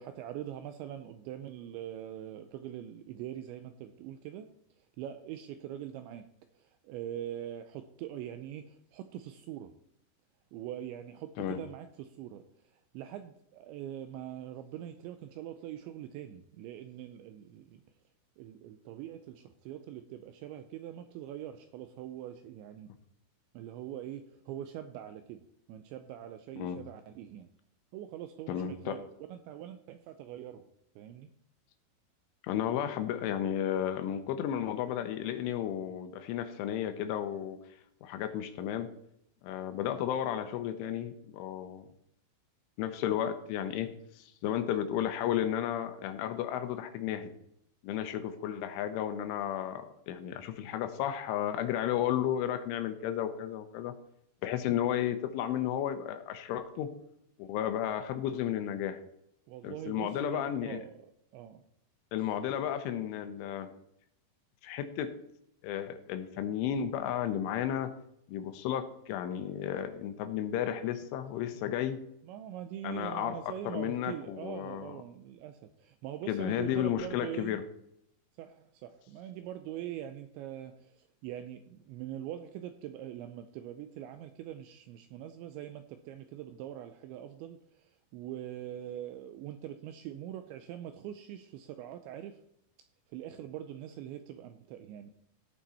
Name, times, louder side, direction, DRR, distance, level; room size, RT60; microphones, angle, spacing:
voice 1, 0.0-4.5 5.0-6.3 6.6-9.7 10.5-12.4 12.7-17.8 18.4-22.9 23.5-25.4 25.7-27.5 27.9-30.7 31.0-31.3 59.5-61.6 72.2-77.6 78.4-92.4 93.1-95.1, right 11 dB, 85° right, 9 dB, 2.7 m, -43 dB
voice 2, 28.5-29.0 32.4-37.6 38.0-38.9 39.4-41.9 42.8-43.9 44.2-47.3 47.8-53.9 54.4-56.9 57.4-59.0 59.6-60.8 62.1-63.7 64.6-65.1 65.6-67.9 68.3-72.0 72.8-75.0 76.3-77.6, left 10 dB, 80° left, 9 dB, 3.3 m, -33 dB
14.5 x 8.7 x 4.2 m, 0.75 s
omnidirectional pair, 5.8 m